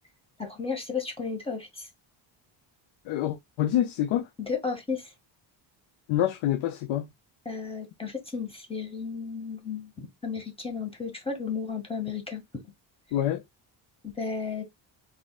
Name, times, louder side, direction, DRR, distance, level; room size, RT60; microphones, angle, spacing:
voice 1, 0.4-1.9 4.4-5.1 7.5-12.6 14.0-14.6, left 5 dB, 10° left, 1.9 m, -33 dB
voice 2, 3.1-4.3 6.1-7.1 13.1-13.4, left 12 dB, 80° left, 0.8 m, -26 dB
5.4 x 4.1 x 2.4 m
cardioid pair, 155°, 47 cm